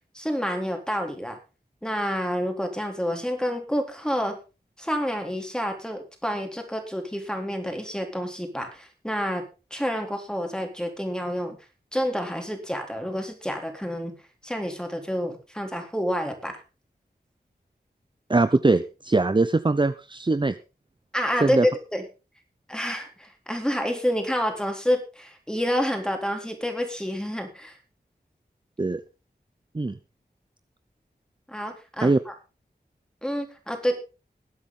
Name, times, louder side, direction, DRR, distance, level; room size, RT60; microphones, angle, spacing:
voice 1, 0.1-1.4 1.8-4.4 4.8-9.4 9.7-11.6 11.9-14.1 14.4-16.6 21.1-22.0 22.7-27.8 31.5-32.3 33.2-34.0, equal, 5° left, 4 dB, 3.8 m, -28 dB
voice 2, 18.3-20.6 21.4-21.7 28.8-29.0 29.7-30.0 32.0-32.2, right 3 dB, 30° right, 11 dB, 0.7 m, -21 dB
21.0 x 8.3 x 3.8 m, 0.32 s
wide cardioid pair, 60°, 17 cm